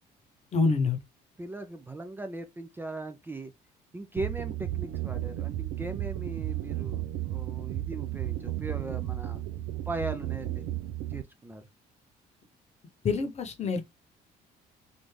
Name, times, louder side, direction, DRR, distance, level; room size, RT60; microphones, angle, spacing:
voice 1, 0.5-1.0 13.0-13.8, left 4 dB, 40° left, 0.9 m, -26 dB
voice 2, 1.4-3.5 3.9-9.4 9.9-10.6 11.1-11.7, right 2 dB, 10° right, 0.4 m, -39 dB
sound 1, 4.2-11.2, right 13 dB, 85° right, 0.4 m, -33 dB
3.4 x 2.6 x 3.2 m
cardioid pair, 110°, 17 cm